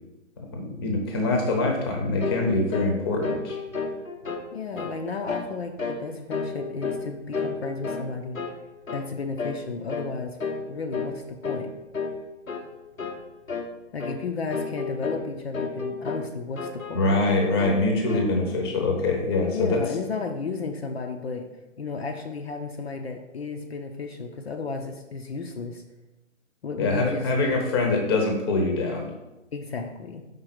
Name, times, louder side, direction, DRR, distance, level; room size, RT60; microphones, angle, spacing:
voice 1, 0.5-3.6 16.9-19.8 26.8-29.1, left 2 dB, 20° left, 2 dB, 0.8 m, -24 dB
sound 1, 2.2-2.5 2.7-3.0 3.2-4.5 4.8-5.0 5.3-5.5 5.8-6.0 6.3-7.1 7.3-8.1 8.3-8.6 8.9-9.1 9.4-9.6 9.9-10.1 10.4-10.7 10.9-11.1 11.4-11.7 11.9-12.2 12.5-12.7 13.0-13.2 13.5-13.7 14.0-14.2 14.5-15.3 15.5-16.3 16.6-17.3 17.6-18.3, left 4 dB, 90° left, 0.9 m, -31 dB
voice 2, 4.5-8.4 8.9-10.4 10.7-11.7 13.9-17.1 19.5-21.5 21.8-25.8 26.6-27.3 29.5-30.2, left 4 dB, 55° left, 4 dB, 0.6 m, -33 dB
5.1 x 3.7 x 5.8 m, 1.0 s
figure-of-eight pair, 140°, 39 cm